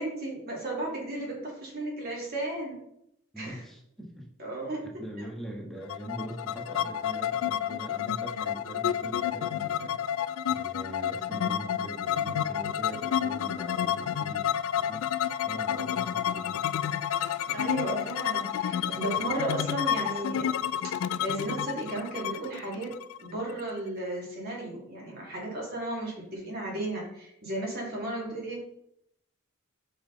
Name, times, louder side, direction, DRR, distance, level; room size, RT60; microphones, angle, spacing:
voice 1, 0.0-2.8 3.4-3.6 4.4-4.8 5.2-5.3 17.5-20.6 20.8-22.9 23.2-28.6, right 1 dB, 50° right, -3 dB, 2.4 m, -34 dB
voice 2, 3.3-4.3 4.8-16.6 17.5-17.6 19.1-19.2, right 1 dB, ahead, -1 dB, 1.2 m, -42 dB
sound 1, 5.9-23.6, left 9 dB, 75° left, 0.3 m, -30 dB
6.1 x 5.5 x 4.0 m, 0.77 s
head